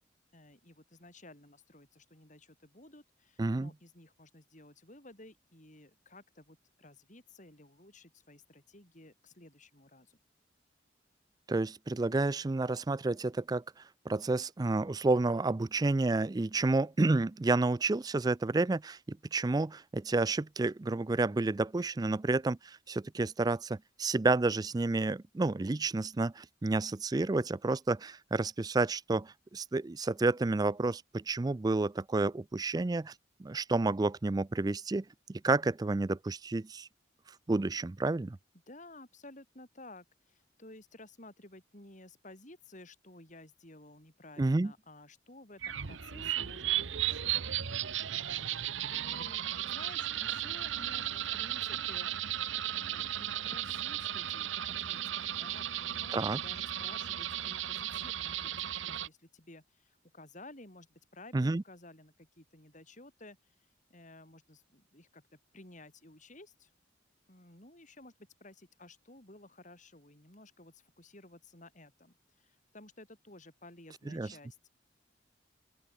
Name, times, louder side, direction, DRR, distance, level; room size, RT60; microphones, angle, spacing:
voice 1, 0.3-10.2 38.7-47.3 48.1-48.6 48.9-52.1 52.7-66.7 67.3-68.1 68.4-74.7, left 2 dB, 40° left, 6.5 m, -54 dB
voice 2, 3.4-3.7 11.5-13.6 14.1-33.1 33.4-36.9 37.5-38.4 44.4-44.7 56.1-56.4 61.3-61.6 74.1-74.3, right 3 dB, 20° right, 0.4 m, -30 dB
sound 1, 45.6-59.1, right 11 dB, 90° right, 1.1 m, -35 dB
open air
head